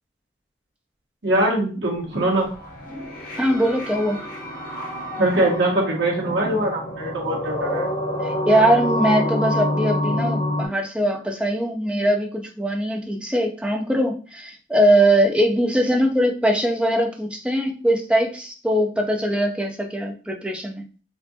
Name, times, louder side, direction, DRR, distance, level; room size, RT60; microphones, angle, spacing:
voice 1, 1.2-2.5 5.2-7.9, right 1 dB, 70° right, -3 dB, 1.6 m, -22 dB
sound 1, 2.1-10.7, left 1 dB, 50° left, 0.9 m, -27 dB
voice 2, 3.4-4.2 8.2-20.8, right 1 dB, 5° right, 2 dB, 0.5 m, -21 dB
4.3 x 2.6 x 2.7 m, 0.38 s
head